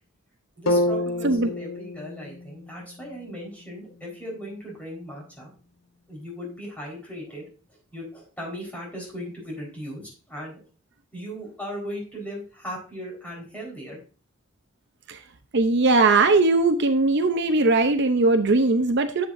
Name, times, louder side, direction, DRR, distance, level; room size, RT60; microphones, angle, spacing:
voice 1, 0.6-5.5 6.1-10.6 11.1-14.0, equal, 10° left, -3 dB, 4.5 m, -37 dB
sound 1, 0.7-4.7, left 1 dB, 85° left, 0.9 m, -30 dB
voice 2, 15.5-19.3, right 3 dB, 60° right, 7 dB, 0.7 m, -20 dB
10.5 x 8.0 x 2.6 m, 0.36 s
head